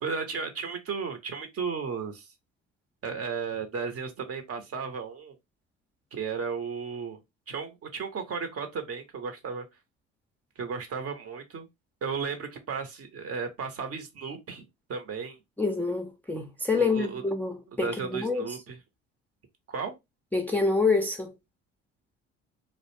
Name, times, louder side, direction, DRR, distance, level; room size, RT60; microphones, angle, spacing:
voice 1, 0.0-2.3 3.0-5.3 6.1-7.2 7.5-9.6 10.6-11.7 12.0-14.6 14.9-15.4 16.7-17.2 17.7-18.8 19.7-19.9, right 5 dB, 45° right, 0.8 m, -34 dB
voice 2, 15.6-18.5 20.3-21.3, left 4 dB, 5° left, 0.4 m, -27 dB
2.4 x 2.1 x 3.0 m
hypercardioid pair, 65°, 33 cm